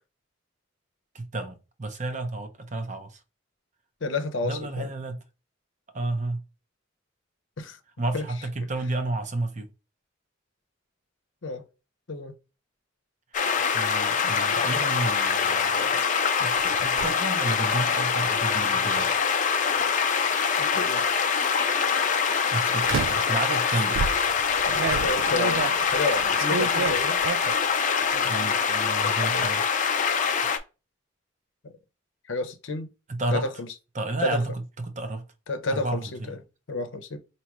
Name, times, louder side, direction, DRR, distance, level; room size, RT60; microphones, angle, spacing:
voice 1, 1.1-3.2 4.4-5.2 5.9-6.4 8.0-9.7 13.4-15.9 16.4-19.2 22.5-24.1 28.2-29.6 33.1-33.5 33.9-35.2 35.7-36.3, right 2 dB, 40° right, 0.7 m, -31 dB
voice 2, 4.0-4.9 7.6-7.8 8.1-8.2 11.4-11.7 12.1-12.3 20.6-21.0 23.7-23.8 24.7-27.2 31.6-31.7 32.3-32.9 33.3-33.7 34.2-34.4 35.5-36.4 36.7-37.2, left 3 dB, 75° left, 0.8 m, -31 dB
sound 1, 13.3-30.6, left 6 dB, 40° left, 0.5 m, -24 dB
sound 2, 16.6-17.1 18.9-19.1 19.9-20.7 21.4-21.7 22.8-23.3 23.9-27.7 28.1-28.6 28.9-29.5, right 6 dB, 85° right, 0.3 m, -31 dB
4.8 x 2.8 x 3.0 m
head